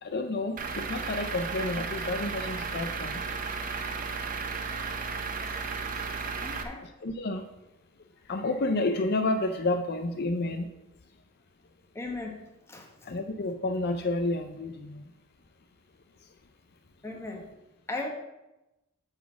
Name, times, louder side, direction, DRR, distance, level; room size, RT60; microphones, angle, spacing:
voice 1, 0.0-3.2 7.0-7.4 8.3-10.7 13.1-15.0, left 2 dB, 50° left, 7 dB, 0.5 m, -30 dB
Truck / Idling, 0.6-6.6, right 4 dB, 40° right, 0.8 m, -34 dB
voice 2, 6.4-6.8 11.9-12.4 12.7-12.9 17.0-17.5 17.9-18.1, left 2 dB, 15° left, 1 dB, 1.4 m, -36 dB
9.6 x 4.1 x 7.1 m, 0.96 s
head